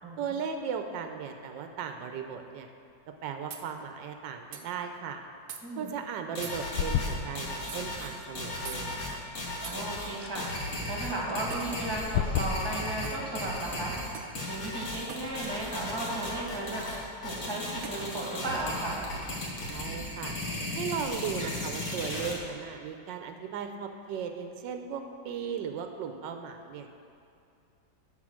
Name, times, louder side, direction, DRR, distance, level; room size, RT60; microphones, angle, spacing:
voice 1, 0.2-2.7 3.2-5.2 5.8-9.2 19.7-20.3 20.7-26.9, right 7 dB, 85° right, 6 dB, 1.3 m, -37 dB
sound 1, 3.0-3.1 3.5-3.7 4.5-4.7 5.5-5.6 6.4-6.6 7.7-7.8 8.6-8.8 9.6-9.8 11.5-11.7 13.0-13.2 14.1-14.4 15.1-15.3 16.9-17.0 17.8-18.0, right 7 dB, 65° right, 1.1 m, -43 dB
sound 2, 6.3-22.3, left 1 dB, 55° left, 1.9 m, -36 dB
sound 3, 6.6-16.8, left 8 dB, 85° left, 1.3 m, -38 dB
voice 2, 9.6-13.9 14.5-19.1, right 2 dB, 15° right, -4 dB, 1.7 m, -35 dB
7.4 x 6.5 x 6.3 m, 2.5 s
omnidirectional pair, 1.9 m